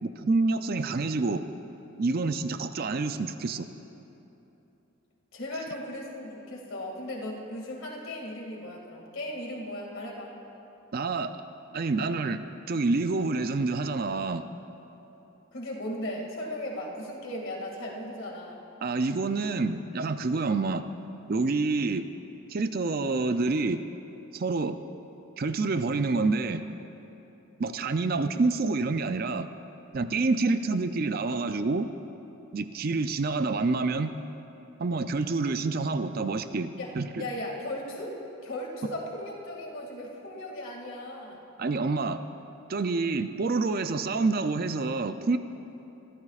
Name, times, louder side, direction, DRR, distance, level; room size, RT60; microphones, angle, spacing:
voice 1, 0.0-1.4 2.0-3.7 10.9-11.3 11.7-12.4 12.7-14.4 18.8-20.8 21.3-22.1 22.5-23.8 24.3-24.8 25.4-26.6 27.6-29.5 29.9-31.9 32.5-34.2 34.8-37.3 41.6-42.2 42.7-45.4, right 3 dB, 45° right, 10 dB, 0.4 m, -27 dB
voice 2, 5.3-10.3 15.5-18.6 36.8-36.9 37.2-41.4, left 1 dB, 65° left, -1 dB, 2.3 m, -37 dB
24.5 x 13.5 x 2.4 m, 3.0 s
head